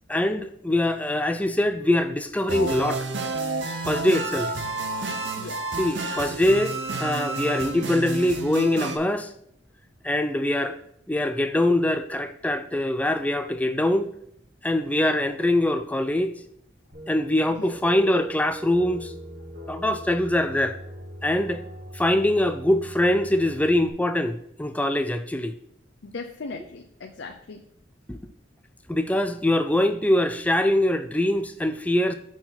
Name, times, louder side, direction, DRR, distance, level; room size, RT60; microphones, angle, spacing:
voice 1, 0.1-3.1 3.9-4.5 5.8-9.3 10.0-10.8 11.1-14.1 14.6-16.3 17.1-19.1 19.7-20.8 21.2-21.6 21.9-25.5 28.1-28.2 28.9-32.1, left 1 dB, 10° left, 0.4 m, -23 dB
sound 1, 2.5-9.0, right 3 dB, 70° right, 0.9 m, -30 dB
sound 2, 16.9-23.9, right 1 dB, 55° right, 1.2 m, -41 dB
voice 2, 26.0-27.6, left 4 dB, 80° left, 0.6 m, -38 dB
6.1 x 4.5 x 5.6 m
head